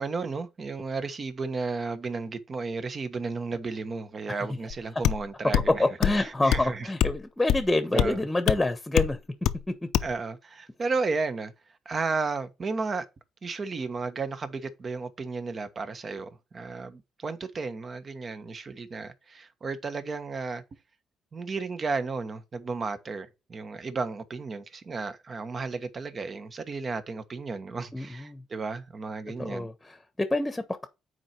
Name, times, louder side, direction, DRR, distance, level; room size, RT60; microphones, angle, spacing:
voice 1, 0.0-6.9 7.9-8.2 10.0-11.5 11.8-13.1 13.4-20.6 21.3-29.7, right 4 dB, 40° right, 1.3 m, -33 dB
sound 1, 4.7-4.8 5.0-5.2 5.5-5.7 6.0-6.2 6.5-6.7 7.0-7.2 7.5-7.7 8.0-8.1 8.5-8.6 9.0-9.1 9.5-9.6 9.9-10.1, left 11 dB, 80° left, 0.6 m, -24 dB
voice 2, 5.7-9.2 27.9-28.4 29.4-30.9, left 2 dB, 10° left, 1.1 m, -27 dB
8.8 x 4.6 x 4.5 m
cardioid pair, 90°, 0 cm